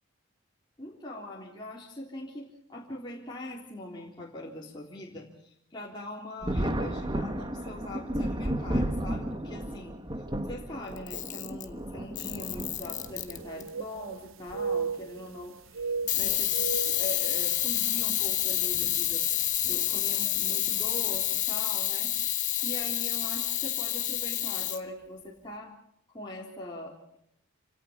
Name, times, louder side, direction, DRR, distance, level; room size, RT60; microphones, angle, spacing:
voice 1, 0.8-10.0 10.4-19.2 19.7-22.1 22.6-25.8 26.1-27.2, left 1 dB, 20° left, -4 dB, 3.7 m, -42 dB
Thunder, 6.4-13.5 14.5-14.6 16.1-16.3 16.7-16.8 18.7-18.9 19.6-20.0, right 1 dB, 20° right, 1.6 m, -33 dB
Camera, 11.0-11.7 12.2-13.7 16.1-24.8, left 13 dB, 35° left, 1.5 m, -29 dB
sound 1, 12.6-12.7 12.9-14.2 14.5-15.4 15.7-17.8 18.2-18.4 19.0-19.3 20.4-20.5 20.8-20.9, right 5 dB, 70° right, 0.8 m, -35 dB
29.0 x 18.0 x 5.3 m, 0.71 s
head